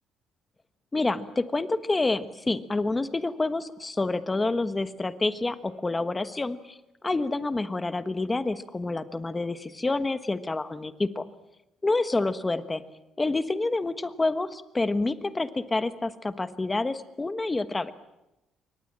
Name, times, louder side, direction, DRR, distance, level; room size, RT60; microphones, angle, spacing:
voice 1, 0.9-6.8 7.0-11.2 11.8-12.8 13.2-17.9, left 2 dB, 15° left, 11 dB, 1.3 m, -28 dB
28.0 x 24.0 x 7.6 m, 0.94 s
cardioid pair, 145°, 0 cm